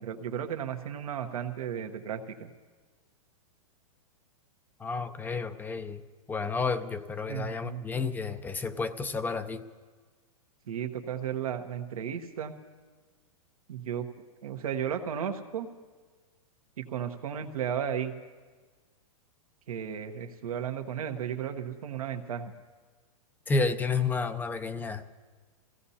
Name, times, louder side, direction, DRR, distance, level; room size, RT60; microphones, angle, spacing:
voice 1, 0.0-2.5 7.3-7.8 10.7-12.5 13.7-14.0 14.4-15.7 16.8-18.1 19.7-22.5, right 8 dB, 80° right, 6 dB, 1.2 m, -34 dB
voice 2, 4.8-6.0 6.3-9.6 23.5-25.0, left 4 dB, 10° left, 10 dB, 0.5 m, -31 dB
26.0 x 16.5 x 2.8 m, 1.4 s
hypercardioid pair, 140°, 18 cm